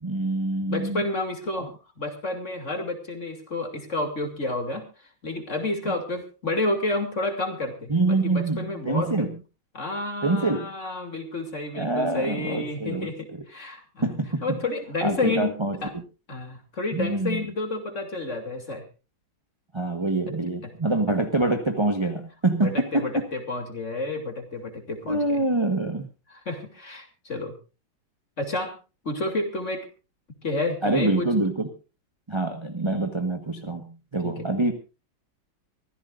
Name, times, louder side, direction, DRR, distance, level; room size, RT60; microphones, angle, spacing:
voice 1, 0.0-1.0 1.6-1.7 5.8-5.9 7.9-9.4 10.2-10.7 11.7-13.4 14.0-14.6 15.0-15.8 16.9-17.4 19.7-23.2 25.1-26.1 30.8-31.7 32.3-34.7, right 2 dB, 15° right, 6 dB, 1.2 m, -25 dB
voice 2, 0.7-9.3 9.7-14.1 14.4-15.5 15.8-15.9 16.3-18.8 20.6-20.7 22.6-25.4 26.3-27.6 28.4-28.7 29.0-29.9 30.4-31.3 34.2-34.5, left 2 dB, 35° left, 5 dB, 3.1 m, -30 dB
25.0 x 15.0 x 2.5 m, 0.32 s
omnidirectional pair, 2.2 m